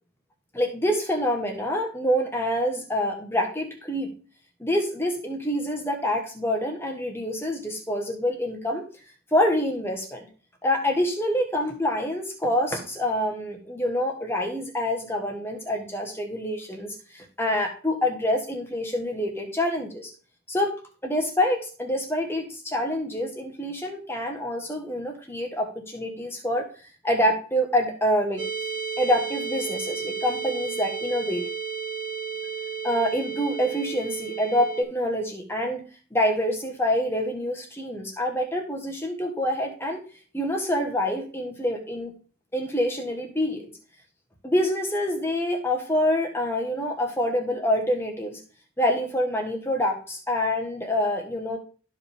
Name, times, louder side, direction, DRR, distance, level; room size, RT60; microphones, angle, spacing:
voice 1, 0.5-4.1 4.6-8.8 9.3-10.3 10.6-20.1 20.5-20.7 21.0-26.7 27.0-28.5 29.0-31.4 32.8-35.8 36.1-40.0 40.3-42.1 42.5-43.7 44.4-48.4 48.8-51.6, left 1 dB, 10° left, 2 dB, 1.2 m, -26 dB
sound 1, 28.4-34.8, right 6 dB, 65° right, 1.8 m, -32 dB
12.5 x 4.9 x 3.5 m, 0.38 s
head